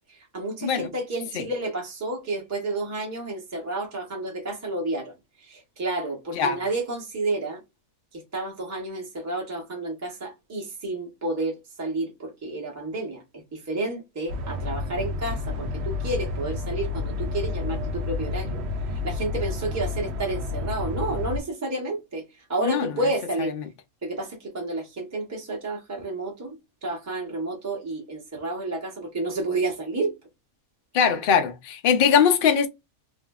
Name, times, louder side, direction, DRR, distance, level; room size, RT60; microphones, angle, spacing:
voice 1, 0.1-5.1 5.4-7.6 8.1-18.6 18.9-23.5 24.0-30.1, right 2 dB, 15° right, 0.6 m, -30 dB
voice 2, 0.6-0.9 1.3-1.4 6.3-6.6 22.6-22.9 23.4-23.5 30.9-32.7, left 7 dB, 70° left, 0.5 m, -21 dB
sound 1, 14.3-21.4, left 3 dB, 65° right, 0.7 m, -30 dB
2.8 x 2.6 x 2.3 m
omnidirectional pair, 1.5 m